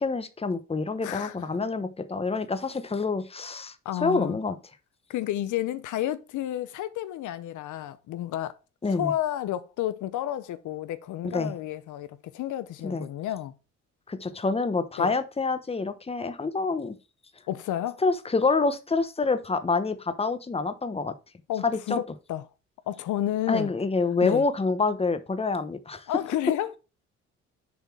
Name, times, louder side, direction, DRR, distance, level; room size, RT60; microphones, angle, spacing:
voice 1, 0.0-3.7 4.0-4.6 8.8-9.1 11.2-11.5 12.8-13.0 14.1-17.0 18.0-21.1 21.6-22.0 23.5-26.0, left 3 dB, 20° left, 1.0 m, -27 dB
voice 2, 1.0-1.5 3.8-4.4 5.1-8.6 8.9-13.5 15.0-15.1 17.5-18.0 21.5-22.4 22.9-23.7 24.2-24.5 26.1-26.7, left 12 dB, 80° left, 0.7 m, -31 dB
7.1 x 4.0 x 4.6 m
cardioid pair, 90°, 30 cm